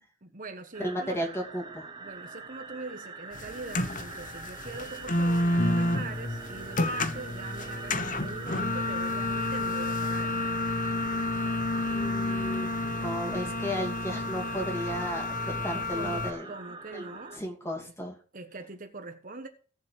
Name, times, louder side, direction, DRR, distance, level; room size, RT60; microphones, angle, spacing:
voice 1, 0.2-1.3 2.0-10.4 15.7-17.4 18.3-19.5, right 3 dB, 45° right, 1.2 m, -42 dB
sound 1, 0.7-17.4, right 4 dB, 25° right, 1.2 m, -42 dB
voice 2, 0.8-1.8 11.4-11.5 11.9-12.7 13.0-15.4 15.6-16.5 16.9-18.2, equal, 15° left, 2.7 m, -34 dB
sound 2, 3.3-16.3, left 2 dB, 45° left, 1.0 m, -30 dB
17.5 x 7.1 x 3.4 m
head